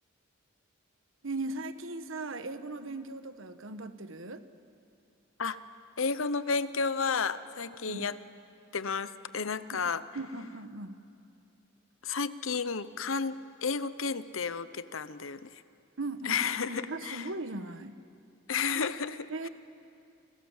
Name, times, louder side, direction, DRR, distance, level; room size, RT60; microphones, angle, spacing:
voice 1, 1.2-4.4 7.9-8.1 9.7-9.8 10.1-11.0 16.0-16.4 16.7-17.9 19.3-19.5, right 2 dB, 75° right, 10 dB, 1.3 m, -38 dB
voice 2, 6.0-8.2 8.7-10.0 12.0-15.6 16.2-17.3 18.5-19.5, left 5 dB, 75° left, 14 dB, 0.9 m, -32 dB
30.0 x 25.5 x 7.4 m, 2.6 s
head